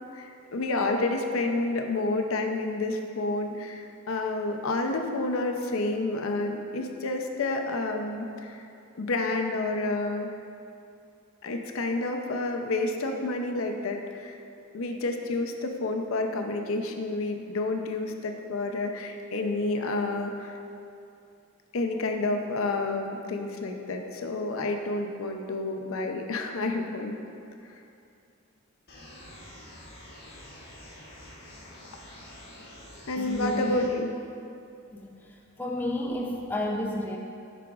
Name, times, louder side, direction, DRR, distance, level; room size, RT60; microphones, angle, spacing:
voice 1, 0.1-8.6 8.9-10.3 11.4-14.4 14.7-20.6 21.7-27.1 27.7-27.8 33.1-34.1, left 2 dB, 80° left, 4 dB, 0.5 m, -29 dB
sound 1, 28.9-33.9, left 1 dB, 50° left, 1.4 m, -47 dB
voice 2, 33.2-33.9 34.9-37.2, left 1 dB, 10° left, -1 dB, 0.4 m, -31 dB
10.5 x 4.9 x 2.4 m, 2.5 s
head